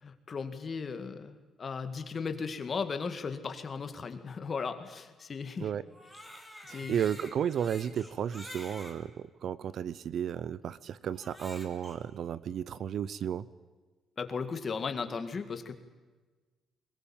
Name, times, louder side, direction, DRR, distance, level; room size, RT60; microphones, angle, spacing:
voice 1, 0.0-5.7 6.7-7.0 14.2-15.7, left 5 dB, 30° left, 9 dB, 2.1 m, -36 dB
Crying sobbing, 5.8-9.0 9.7-9.8 11.1-12.0, left 1 dB, 5° right, 3.2 m, -48 dB
voice 2, 6.7-13.5, right 9 dB, 50° right, 18 dB, 0.7 m, -33 dB
23.0 x 20.5 x 8.9 m, 1.3 s
cardioid pair, 165°, 0 cm